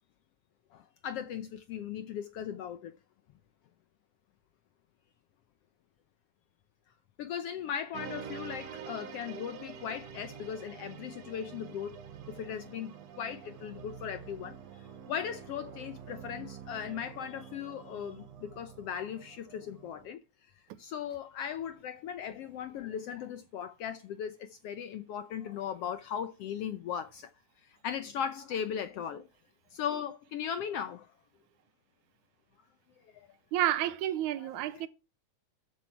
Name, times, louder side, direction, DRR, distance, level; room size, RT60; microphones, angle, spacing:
voice 1, 0.7-2.9 7.2-12.0 12.3-20.2 20.8-27.3 27.6-29.3 29.7-31.1 33.1-33.3 34.4-34.9, left 8 dB, 75° left, 1.5 m, -38 dB
sound 1, 7.9-20.1, right 8 dB, 65° right, 2.2 m, -47 dB
voice 2, 33.5-34.9, right 13 dB, 80° right, 2.2 m, -30 dB
13.0 x 7.9 x 4.5 m
omnidirectional pair, 3.5 m